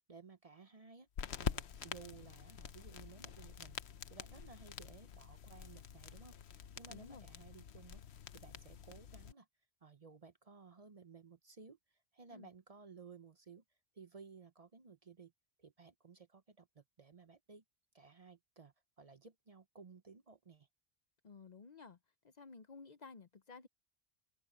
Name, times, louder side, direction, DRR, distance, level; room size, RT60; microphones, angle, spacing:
voice 1, 0.1-1.1 1.4-3.8 4.1-8.0 8.3-9.5 9.8-13.6 13.9-15.3 15.6-17.6 17.9-20.7, right 5 dB, 40° right, 0.8 m, -57 dB
sound 1, 1.2-9.3, left 8 dB, 85° left, 1.1 m, -46 dB
voice 2, 6.9-7.2 12.3-12.5 21.2-22.0 22.2-23.7, left 4 dB, 45° left, 0.7 m, -54 dB
open air
omnidirectional pair, 1.1 m